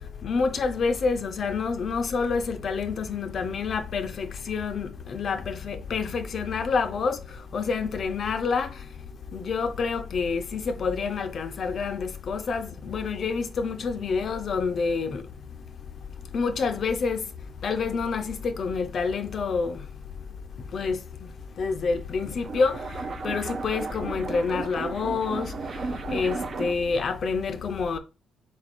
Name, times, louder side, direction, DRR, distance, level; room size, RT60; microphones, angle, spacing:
voice 1, 0.2-8.7 9.3-15.2 16.3-17.2 17.6-19.8 20.7-21.0 21.6-22.8 23.2-25.5 26.1-28.0, left 5 dB, 55° left, 0.4 m, -28 dB
sound 1, 22.0-26.9, right 4 dB, 45° right, 0.4 m, -34 dB
3.7 x 2.4 x 3.5 m
cardioid pair, 90°, 0 cm